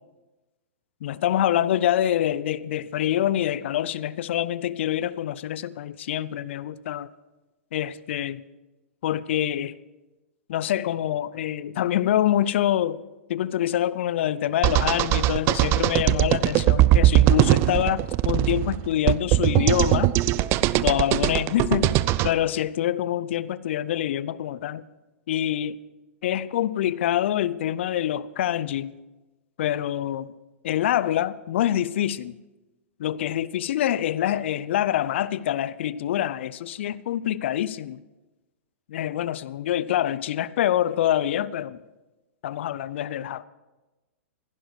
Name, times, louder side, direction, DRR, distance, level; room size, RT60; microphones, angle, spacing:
voice 1, 1.0-7.1 7.7-8.4 9.0-9.7 10.5-13.0 13.3-20.1 20.8-24.8 25.3-25.8 26.2-28.9 29.6-30.3 30.6-32.4 33.0-38.0 38.9-41.8 42.4-43.4, left 11 dB, 60° left, 19 dB, 0.5 m, -25 dB
sound 1, 14.6-22.3, right 15 dB, 35° right, 0.5 m, -20 dB
15.5 x 11.0 x 4.7 m, 1.1 s
hypercardioid pair, 110°, 7 cm